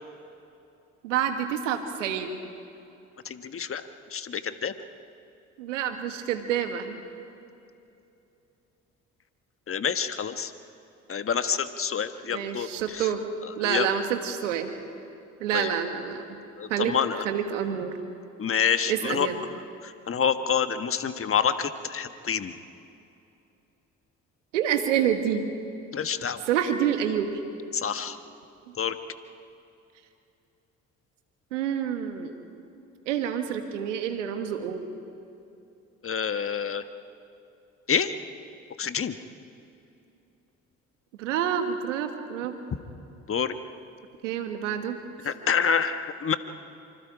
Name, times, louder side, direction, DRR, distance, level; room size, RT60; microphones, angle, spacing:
voice 1, 1.0-2.4 5.6-7.0 12.3-13.3 13.6-14.7 15.4-16.4 16.7-16.9 17.2-18.0 18.9-19.3 24.5-25.4 26.5-27.4 31.5-32.3 33.1-34.8 41.2-42.6 44.2-45.0 45.3-45.4, right 9 dB, 90° right, 7 dB, 1.6 m, -28 dB
voice 2, 3.2-3.8 4.1-4.7 9.7-10.5 11.1-13.1 13.6-13.9 15.5-15.7 16.6-17.2 18.4-19.3 19.8-22.5 25.9-26.4 27.7-28.2 28.8-29.0 36.0-36.8 37.9-38.1 38.8-39.1 43.3-43.5 45.2-46.4, left 7 dB, 35° left, 9 dB, 1.4 m, -27 dB
26.0 x 25.5 x 5.0 m, 2.7 s
hypercardioid pair, 55°, 36 cm